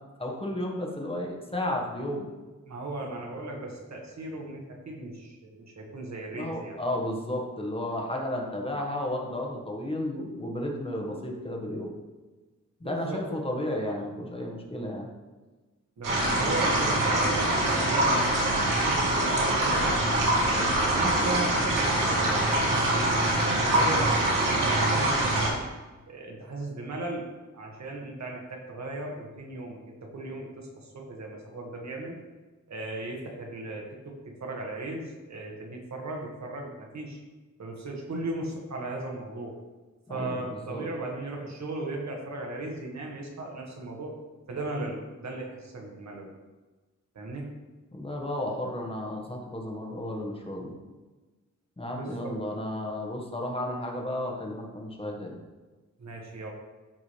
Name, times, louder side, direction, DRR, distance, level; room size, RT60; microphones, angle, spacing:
voice 1, 0.2-2.3 6.3-11.9 12.8-15.1 40.1-40.9 47.9-50.7 51.8-55.3, left 1 dB, 20° left, 0 dB, 1.5 m, -33 dB
voice 2, 2.7-6.8 12.8-13.2 16.0-19.9 20.4-25.6 26.1-27.3 27.5-32.1 32.7-34.1 34.4-37.2 37.6-39.5 40.1-44.2 44.5-46.3 47.1-47.5 52.0-52.3 56.0-56.5, right 2 dB, 60° right, 0 dB, 1.7 m, -37 dB
sound 1, 16.0-25.5, right 1 dB, 90° right, 2.4 m, -24 dB
13.5 x 4.8 x 3.3 m, 1.2 s
wide cardioid pair, 110°, 31 cm